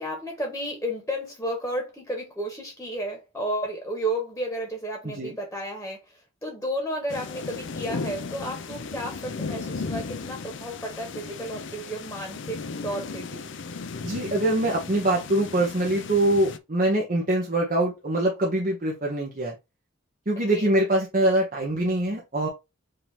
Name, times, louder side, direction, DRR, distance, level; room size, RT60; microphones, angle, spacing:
voice 1, 0.0-13.5 20.4-20.7, right 1 dB, 10° left, 1.3 m, -32 dB
voice 2, 5.0-5.4 14.0-19.5 20.3-22.5, right 1 dB, 40° right, 1.1 m, -24 dB
sound 1, 7.1-16.6, left 4 dB, 60° left, 0.5 m, -36 dB
5.5 x 2.8 x 3.5 m
head